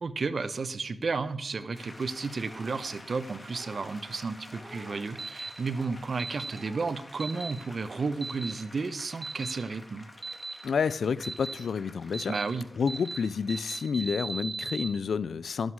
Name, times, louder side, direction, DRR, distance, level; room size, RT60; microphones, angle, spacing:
voice 1, 0.0-10.1 12.3-12.7, right 4 dB, 65° right, 0.9 m, -32 dB
sound 1, 1.7-13.9, left 2 dB, 30° left, 2.5 m, -50 dB
sound 2, 2.4-3.0 3.5-3.9 4.5-5.0 5.6-6.0 6.4-7.0, right 1 dB, 20° right, 3.3 m, -50 dB
sound 3, 5.2-5.5 6.2-6.5 7.2-7.5 8.2-8.5 9.2-9.5 10.2-10.5 11.2-11.5 12.1-12.4 12.9-13.2 13.5-14.9, right 3 dB, 40° right, 2.3 m, -36 dB
voice 2, 10.6-12.4 12.8-15.7, left 6 dB, 85° left, 0.4 m, -29 dB
12.5 x 11.5 x 4.8 m
cardioid pair, 50°, 0 cm